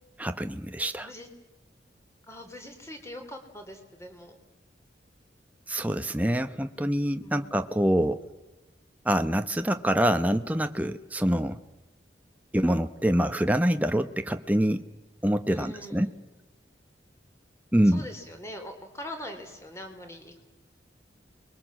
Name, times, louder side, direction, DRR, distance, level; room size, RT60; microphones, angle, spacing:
voice 1, 0.2-1.1 5.7-8.2 9.0-11.6 12.5-14.8 15.2-16.1 17.7-18.1, equal, 10° right, 8 dB, 0.8 m, -25 dB
voice 2, 2.3-4.4 7.2-7.5 15.5-16.1 17.8-20.4, left 1 dB, 15° left, 5 dB, 3.5 m, -42 dB
29.5 x 22.0 x 7.4 m, 1.1 s
head